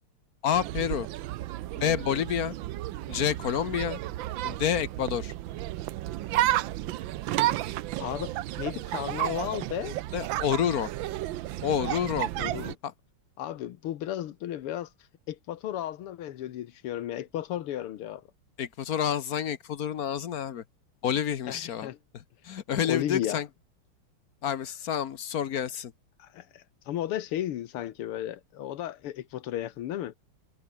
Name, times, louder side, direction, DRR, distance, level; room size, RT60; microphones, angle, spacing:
voice 1, 0.4-1.1 1.8-2.5 3.1-4.0 4.4-5.3 10.1-10.9 11.6-12.3 12.8-12.9 18.6-20.6 21.0-21.9 22.4-23.5 24.4-25.9, left 9 dB, 55° left, 1.2 m, -28 dB
sound 1, 0.5-12.7, right 15 dB, 70° right, 1.3 m, -32 dB
voice 2, 8.0-10.0 12.4-12.8 13.4-14.9 15.3-18.2 21.5-22.0 22.8-23.4 26.2-30.1, left 12 dB, 90° left, 2.0 m, -34 dB
omnidirectional pair, 2.4 m